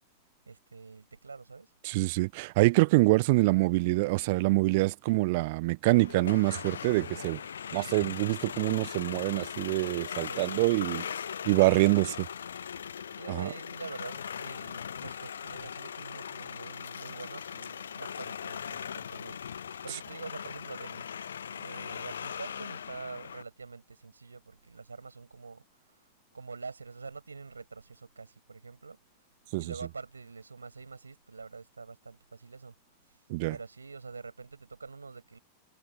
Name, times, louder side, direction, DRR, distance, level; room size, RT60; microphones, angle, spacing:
voice 1, 0.5-1.7 10.2-10.4 13.1-21.1 21.5-25.6 26.3-29.0 29.6-32.8 33.5-35.4, right 4 dB, 75° right, 5.7 m, -45 dB
voice 2, 1.8-7.4 7.7-11.0 11.5-12.3 13.3-13.5 29.5-29.7 33.3-33.6, right 23 dB, 50° right, 0.7 m, -25 dB
sound 1, 5.8-23.4, left 8 dB, 70° left, 0.6 m, -40 dB
figure-of-eight pair, 90°, 0 cm